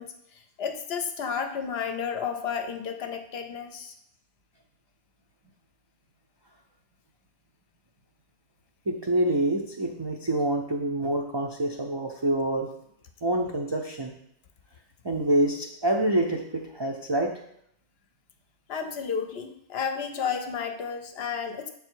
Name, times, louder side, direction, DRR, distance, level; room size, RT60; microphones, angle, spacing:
voice 1, 0.0-3.9 18.7-21.7, left 6 dB, 65° left, 7 dB, 0.8 m, -32 dB
voice 2, 8.9-12.7 13.2-14.1 15.0-17.3, right 1 dB, 45° right, 0 dB, 0.3 m, -26 dB
6.8 x 3.6 x 4.5 m, 0.72 s
omnidirectional pair, 1.3 m